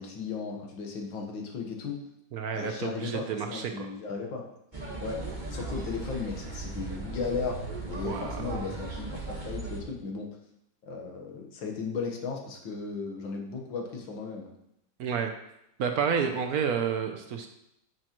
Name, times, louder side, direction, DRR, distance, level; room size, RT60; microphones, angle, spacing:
voice 1, 0.0-2.0 2.5-4.5 4.7-5.2 5.5-10.3 10.8-14.5, left 5 dB, 85° left, 1 dB, 2.0 m, -36 dB
voice 2, 2.3-3.9 8.0-8.4 15.0-15.3 15.8-17.5, right 7 dB, 65° right, 5 dB, 1.0 m, -30 dB
sound 1, 4.7-9.8, right 3 dB, 25° right, 1.4 m, -37 dB
10.0 x 6.4 x 3.0 m, 0.82 s
omnidirectional pair, 2.0 m